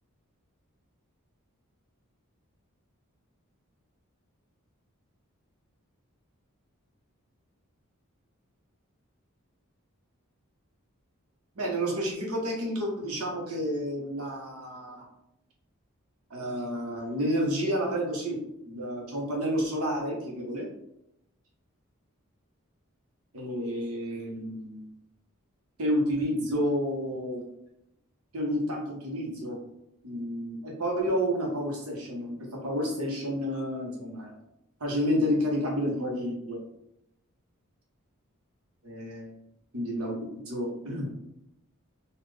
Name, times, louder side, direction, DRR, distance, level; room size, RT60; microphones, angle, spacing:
voice 1, 11.5-15.0 16.3-18.4 18.6-20.7 23.3-24.9 25.8-27.4 28.3-29.6 30.0-34.4 34.8-36.6 38.8-39.4 39.7-41.1, equal, 85° right, -2 dB, 1.2 m, -30 dB
4.1 x 2.5 x 3.3 m, 0.81 s
head